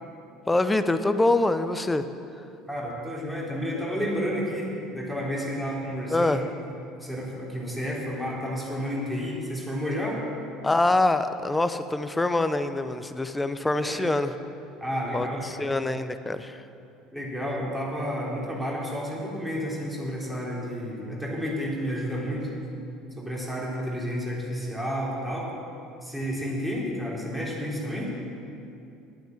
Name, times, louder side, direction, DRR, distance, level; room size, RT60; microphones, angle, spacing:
voice 1, 0.5-2.0 6.1-6.4 10.6-14.3 15.1-16.6, left 2 dB, 15° left, 11 dB, 0.7 m, -25 dB
voice 2, 2.7-6.4 7.0-10.2 13.8-14.0 14.8-15.7 17.1-22.5 23.2-25.5 26.0-28.2, equal, 5° right, -4 dB, 3.6 m, -31 dB
11.0 x 9.1 x 7.3 m, 2.7 s
figure-of-eight pair, 65°, 0 cm